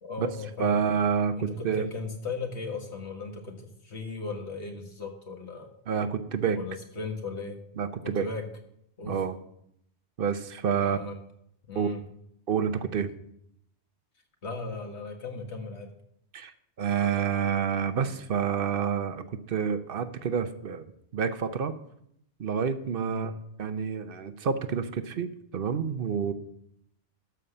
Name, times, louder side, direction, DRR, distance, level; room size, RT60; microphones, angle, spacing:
voice 1, 0.0-0.8 1.3-5.7 6.5-7.6 8.2-8.4 9.0-9.2 10.8-11.2 11.7-12.0 14.4-15.9 23.1-23.4, left 4 dB, 65° left, 3 dB, 2.0 m, -37 dB
voice 2, 0.6-1.9 5.9-6.6 7.8-8.3 9.1-9.4 10.2-11.0 11.7-11.9 12.5-13.1 16.3-16.5 16.8-20.8 21.1-21.7 22.4-23.3 23.6-26.3, right 7 dB, 55° right, 11 dB, 0.9 m, -28 dB
12.5 x 5.8 x 6.7 m, 0.74 s
omnidirectional pair, 1.2 m